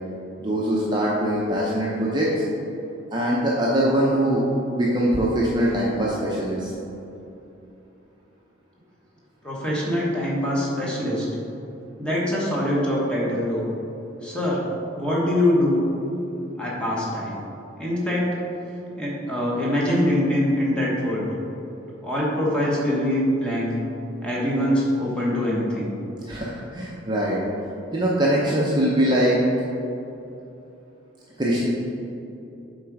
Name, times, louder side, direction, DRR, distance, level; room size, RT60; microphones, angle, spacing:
voice 1, 0.4-2.4 3.1-4.4 4.7-6.7 26.3-27.4 27.9-29.4 31.4-31.7, right 1 dB, 20° right, -5 dB, 0.7 m, -22 dB
voice 2, 9.4-11.3 12.0-13.6 14.2-14.6 14.9-15.8 16.6-17.3 17.8-18.3 19.0-21.3 22.0-23.8 24.2-25.9, left 1 dB, 5° left, -6 dB, 1.3 m, -23 dB
7.4 x 3.9 x 4.8 m, 2.9 s
head